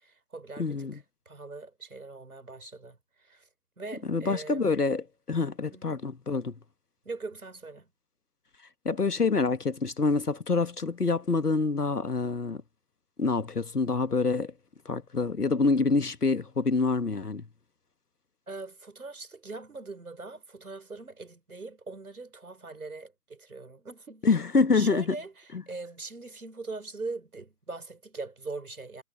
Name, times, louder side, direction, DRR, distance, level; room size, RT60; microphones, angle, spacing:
voice 1, 0.0-3.0 3.2-3.4 3.8-4.7 5.7-6.0 7.0-7.9 18.5-24.3 24.7-29.0, right 3 dB, 65° right, 5.2 m, -41 dB
voice 2, 0.6-1.0 4.1-6.5 8.8-12.6 13.2-14.5 14.8-17.4 24.2-25.2 25.5-25.6, left 4 dB, 70° left, 1.6 m, -26 dB
figure-of-eight pair, 150°, 47 cm